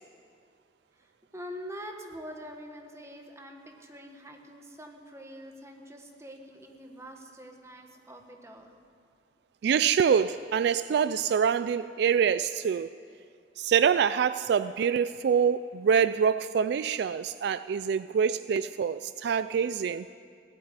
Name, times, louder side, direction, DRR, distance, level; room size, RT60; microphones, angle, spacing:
voice 1, 1.0-8.8, equal, 15° right, 1.4 m, -45 dB
voice 2, 9.6-12.9 13.6-20.1, right 7 dB, 70° right, 0.3 m, -25 dB
16.5 x 8.9 x 9.5 m
head